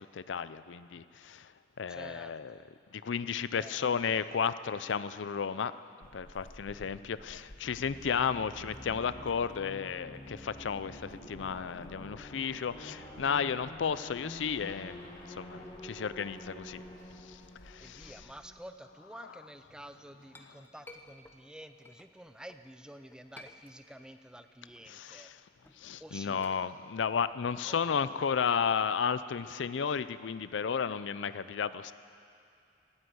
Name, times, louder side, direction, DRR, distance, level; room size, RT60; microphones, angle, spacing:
voice 1, 0.0-1.5 1.8-2.6 2.9-5.7 6.1-16.8 17.2-18.1 19.2-19.3 24.9-25.4 25.8-31.9, left 6 dB, 75° left, 14 dB, 0.5 m, -33 dB
voice 2, 1.9-2.7 3.6-3.8 6.7-6.9 17.8-25.3 26.0-26.4 27.6-27.8, right 1 dB, 5° right, 9 dB, 0.5 m, -50 dB
Walk footsteps / Squeak, 6.0-18.7, left 1 dB, 50° left, 1.1 m, -57 dB
sound 1, 7.6-19.2, left 1 dB, 25° left, 1.9 m, -48 dB
Chink clink, 19.8-22.7 23.1-24.2 24.5-28.6, left 1 dB, 10° left, 0.9 m, -56 dB
18.5 x 9.8 x 7.9 m, 2.6 s
head